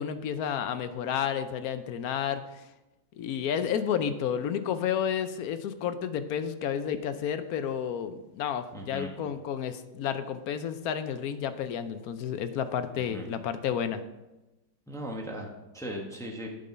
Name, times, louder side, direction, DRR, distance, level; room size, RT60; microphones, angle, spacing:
voice 1, 0.0-2.4 3.2-14.0, left 8 dB, 70° left, 11 dB, 1.0 m, -31 dB
voice 2, 8.7-9.1 12.9-13.3 14.9-16.5, equal, ahead, 0 dB, 1.0 m, -38 dB
8.6 x 5.3 x 6.7 m, 1.0 s
omnidirectional pair, 1.9 m